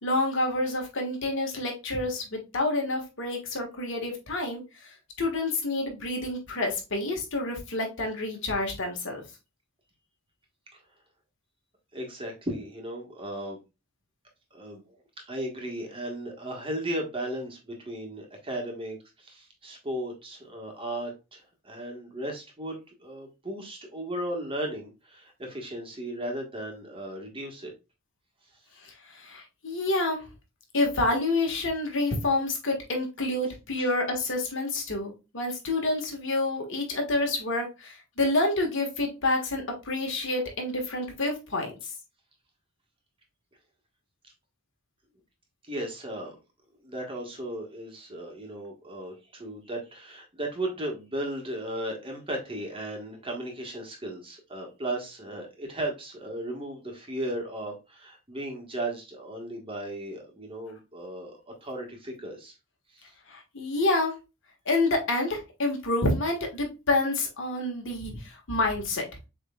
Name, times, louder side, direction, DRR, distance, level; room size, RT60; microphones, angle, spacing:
voice 1, 0.0-9.2 28.8-30.3 30.7-41.7 63.3-64.1 64.6-69.0, left 2 dB, 60° left, 2 dB, 1.5 m, -28 dB
voice 2, 11.9-13.6 14.5-14.8 15.3-27.7 33.8-33.9 45.7-46.4 46.8-62.5 62.9-63.1, right 1 dB, 25° right, 1 dB, 1.4 m, -36 dB
7.2 x 3.2 x 2.3 m, 0.27 s
head